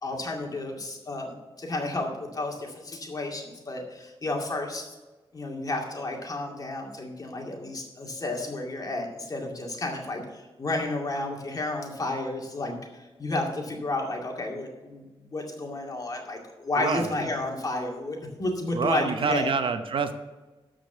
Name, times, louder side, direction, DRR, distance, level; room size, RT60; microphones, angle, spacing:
voice 1, 0.0-5.0 5.3-19.5, left 2 dB, 40° left, 1 dB, 2.3 m, -32 dB
voice 2, 18.7-20.1, right 5 dB, 65° right, 9 dB, 0.9 m, -26 dB
13.5 x 5.1 x 6.7 m, 1.2 s
wide cardioid pair, 125°, 10 cm